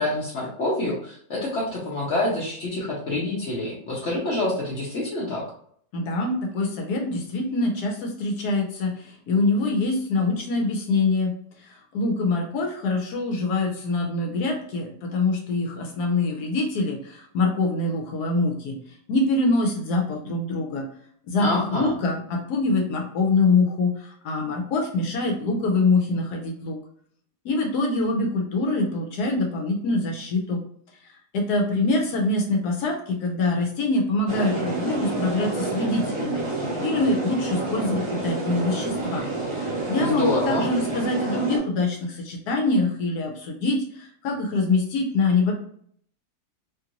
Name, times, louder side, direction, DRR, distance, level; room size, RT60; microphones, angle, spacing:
voice 1, 0.0-5.5 21.4-21.9 40.0-40.7, left 2 dB, 55° left, -4 dB, 0.9 m, -27 dB
voice 2, 5.9-18.8 19.1-20.9 21.3-26.8 27.4-30.6 31.0-39.3 39.5-45.5, left 3 dB, 80° left, 1 dB, 1.1 m, -24 dB
A large crowd of people talking, 34.3-41.6, right 3 dB, 30° right, 0.5 m, -29 dB
2.9 x 2.5 x 2.8 m, 0.62 s
omnidirectional pair, 1.7 m